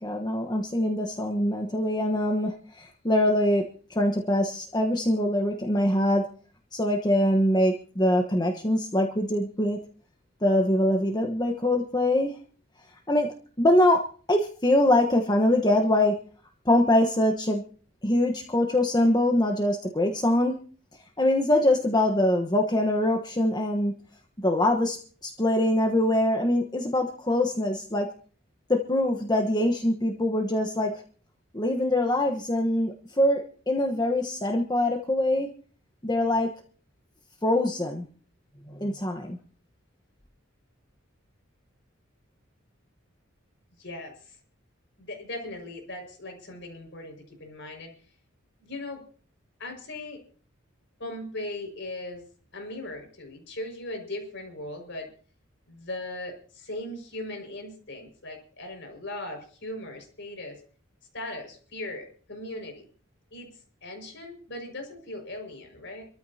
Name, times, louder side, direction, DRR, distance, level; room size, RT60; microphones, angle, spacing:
voice 1, 0.0-6.3 6.7-9.8 10.4-12.4 13.1-16.2 16.6-17.6 18.0-20.6 21.2-23.9 24.4-28.1 28.7-31.0 31.5-35.5 36.0-36.5 37.4-38.1 38.7-39.4, left 1 dB, 20° left, 3 dB, 1.2 m, -24 dB
voice 2, 43.8-44.4 45.0-47.9 48.6-49.0 49.6-50.2 51.0-52.2 52.5-55.1 55.7-60.6 61.1-62.8 63.3-63.5 63.8-66.1, left 1 dB, 60° left, 4 dB, 5.7 m, -38 dB
27.0 x 14.0 x 2.8 m, 0.42 s
head